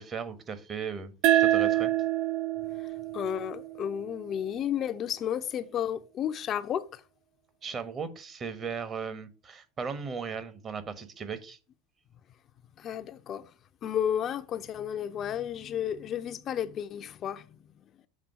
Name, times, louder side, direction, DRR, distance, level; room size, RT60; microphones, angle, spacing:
voice 1, 0.0-1.9 7.6-11.6, right 6 dB, 35° right, 1.2 m, -37 dB
sound 1, 1.2-4.4, right 13 dB, 60° right, 0.4 m, -27 dB
voice 2, 3.1-7.0 12.8-13.5 13.8-17.5, left 9 dB, 45° left, 0.5 m, -32 dB
7.4 x 3.7 x 5.9 m
hypercardioid pair, 80°, 0 cm